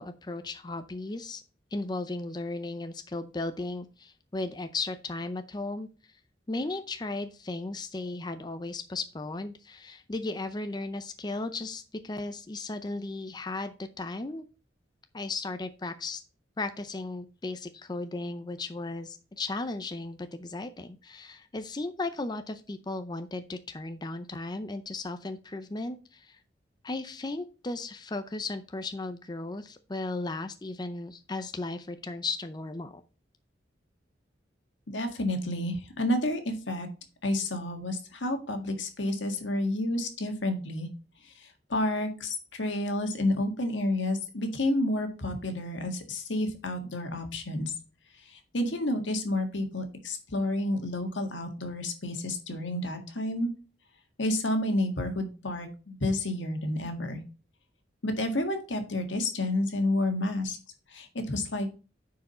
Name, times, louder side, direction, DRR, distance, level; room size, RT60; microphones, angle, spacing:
voice 1, 0.0-1.4 1.7-5.9 6.5-14.4 15.1-16.2 16.6-26.4 26.8-33.0, left 2 dB, 25° left, 9 dB, 0.5 m, -36 dB
voice 2, 34.9-36.9 37.2-40.9 41.2-47.7 48.2-53.5 54.2-57.2 58.0-60.6 60.9-61.8, left 1 dB, 85° left, 6 dB, 1.7 m, -30 dB
9.8 x 4.8 x 4.2 m, 0.34 s
head